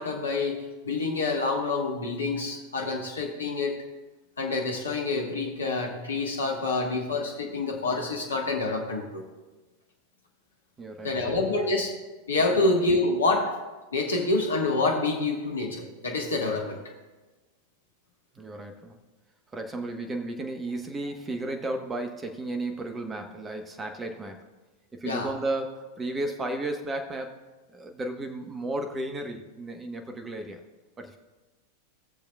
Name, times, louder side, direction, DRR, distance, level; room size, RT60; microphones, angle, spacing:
voice 1, 0.0-3.8 4.4-9.2 11.0-11.9 12.3-13.5 13.9-16.8 25.0-25.3, left 3 dB, 70° left, 1 dB, 1.3 m, -27 dB
voice 2, 10.8-11.7 12.6-12.7 18.3-19.0 19.5-24.5 24.9-27.4 27.7-30.6 31.0-31.2, right 2 dB, 15° right, 5 dB, 1.1 m, -34 dB
19.5 x 6.9 x 2.3 m, 1.2 s
figure-of-eight pair, 90°, 0 cm